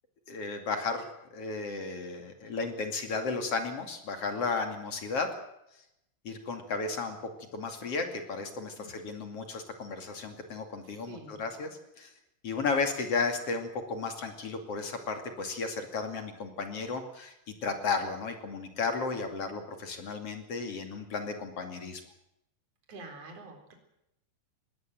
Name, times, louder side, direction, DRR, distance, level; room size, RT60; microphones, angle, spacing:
voice 1, 0.3-5.3 6.2-7.2 7.5-11.7 12.0-12.1 12.4-17.3 17.6-22.0, left 4 dB, 40° left, 5 dB, 3.0 m, -34 dB
voice 2, 10.8-11.4 22.9-23.7, right 3 dB, 40° right, 3 dB, 4.8 m, -47 dB
21.0 x 17.5 x 7.7 m, 0.82 s
omnidirectional pair, 4.6 m